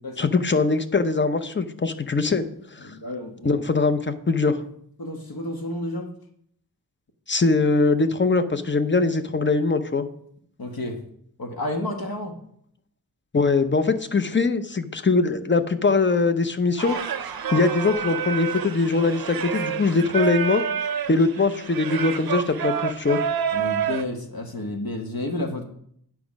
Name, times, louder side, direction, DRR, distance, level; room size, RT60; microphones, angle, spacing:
voice 1, 0.2-2.5 2.7-2.9 3.4-4.6 7.3-10.1 13.3-17.0 17.5-20.6 21.1-23.2, left 3 dB, 30° left, 10 dB, 0.6 m, -22 dB
voice 2, 2.8-3.6 5.0-6.1 10.6-11.0 11.4-12.3 23.5-25.6, left 1 dB, 60° left, 3 dB, 1.2 m, -31 dB
Singing, 16.8-24.0, right 8 dB, 60° right, 0.6 m, -28 dB
9.3 x 5.9 x 5.2 m, 0.68 s
wide cardioid pair, 100°, 41 cm